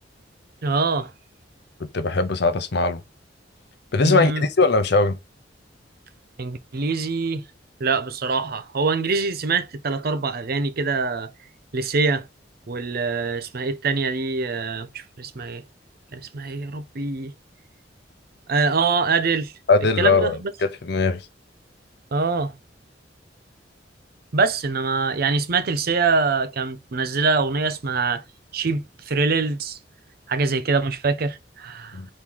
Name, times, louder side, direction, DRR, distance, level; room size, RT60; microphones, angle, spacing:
voice 1, 0.6-1.1 4.0-4.5 6.4-7.4 7.8-11.3 11.7-12.3 12.7-15.6 16.1-17.3 18.5-19.5 20.0-20.5 22.1-22.5 24.3-28.2 28.5-29.8 30.3-32.0, right 4 dB, 55° right, 0.6 m, -24 dB
voice 2, 1.9-3.0 3.9-5.2 19.7-21.2 31.9-32.1, left 3 dB, 65° left, 0.7 m, -20 dB
4.3 x 3.0 x 3.6 m
head